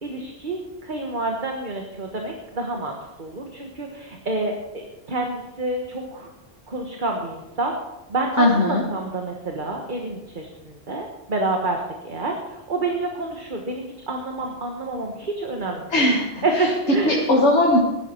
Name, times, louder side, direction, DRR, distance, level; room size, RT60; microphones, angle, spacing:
voice 1, 0.0-6.3 6.7-7.7 8.1-16.1 16.4-17.2, right 2 dB, 45° right, 2 dB, 1.5 m, -28 dB
voice 2, 8.4-8.8 15.9-16.7 17.0-17.8, left 1 dB, 85° left, -1 dB, 2.0 m, -19 dB
15.0 x 11.5 x 4.5 m, 0.99 s
omnidirectional pair, 1.1 m